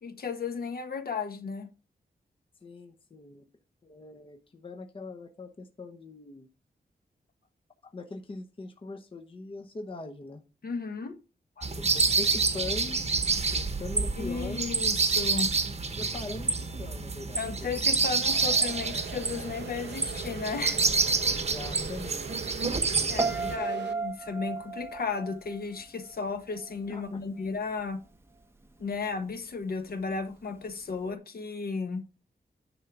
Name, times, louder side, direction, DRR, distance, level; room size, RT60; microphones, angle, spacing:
voice 1, 0.0-1.7 10.6-11.1 11.6-11.7 14.2-15.5 17.4-20.8 23.1-28.0 28.8-32.0, left 4 dB, 60° left, 1.2 m, -34 dB
voice 2, 2.6-3.5 3.8-6.5 7.8-10.4 11.8-13.1 13.5-14.6 16.0-17.5 21.3-22.6 22.9-23.5 26.9-27.2, left 3 dB, 30° left, 0.8 m, -41 dB
sound 1, 11.6-23.5, right 4 dB, 40° right, 1.0 m, -28 dB
sound 2, 18.2-23.9, right 6 dB, 90° right, 0.8 m, -42 dB
Piano, 23.2-26.3 26.6-27.0, right 3 dB, 15° right, 0.7 m, -34 dB
10.0 x 3.8 x 5.9 m
wide cardioid pair, 175°, 18 cm